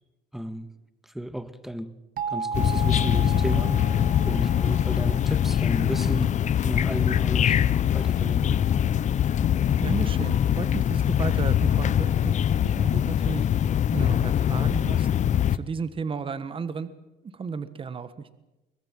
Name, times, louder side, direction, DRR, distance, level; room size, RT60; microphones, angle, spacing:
voice 1, 0.3-0.7 1.1-1.9 2.3-6.3 6.6-7.6 7.9-8.7, right 1 dB, ahead, 12 dB, 1.5 m, -33 dB
sound 1, 2.2-6.9, right 5 dB, 55° right, 1.8 m, -36 dB
sound 2, 2.5-15.6, left 9 dB, 45° left, 0.8 m, -23 dB
voice 2, 9.6-12.4 12.6-16.9 17.2-18.3, right 5 dB, 30° right, 14 dB, 1.4 m, -34 dB
23.5 x 19.5 x 7.6 m, 1.0 s
cardioid pair, 110°, 17 cm